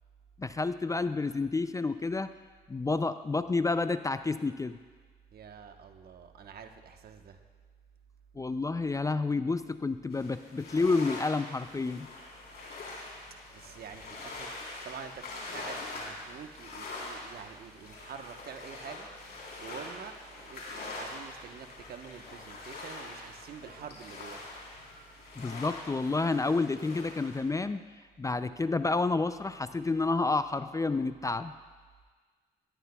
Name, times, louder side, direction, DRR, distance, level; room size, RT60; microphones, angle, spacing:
voice 1, 0.4-2.3 2.7-4.8 8.4-12.1 25.4-27.8 28.2-31.5, left 3 dB, 20° left, 12 dB, 0.4 m, -29 dB
voice 2, 5.3-7.4 13.5-14.5 14.8-19.1 19.6-24.5, right 7 dB, 65° right, 6 dB, 1.1 m, -46 dB
sound 1, 10.1-27.4, left 2 dB, 70° left, 3.8 m, -44 dB
19.5 x 13.5 x 2.3 m, 1.5 s
cardioid pair, 70°, 17 cm